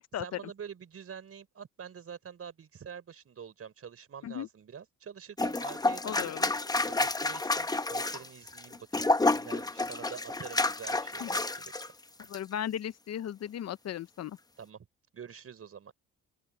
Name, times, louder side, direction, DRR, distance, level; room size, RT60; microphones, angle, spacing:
voice 1, 0.2-6.3 6.8-11.9 14.6-14.8 15.1-15.9, right 7 dB, 50° right, 5.1 m, -46 dB
sound 1, 5.4-11.9 12.2-12.4, left 2 dB, 15° left, 0.9 m, -30 dB
voice 2, 6.0-6.5 11.2-11.3 12.3-14.4, left 10 dB, 60° left, 0.7 m, -36 dB
open air
cardioid pair, 90°, 30 cm